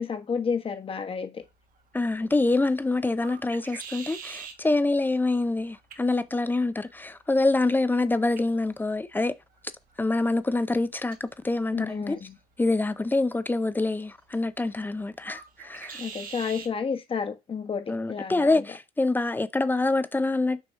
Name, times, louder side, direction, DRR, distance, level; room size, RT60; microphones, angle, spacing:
voice 1, 0.0-1.4 11.7-12.4 15.9-18.6, left 6 dB, 35° left, 1.3 m, -31 dB
sound 1, 1.4-16.8, right 6 dB, 55° right, 1.4 m, -48 dB
voice 2, 1.9-9.3 10.0-12.2 12.6-16.0 17.9-20.6, left 2 dB, 10° left, 0.6 m, -26 dB
6.4 x 3.0 x 5.5 m
cardioid pair, 110°, 17 cm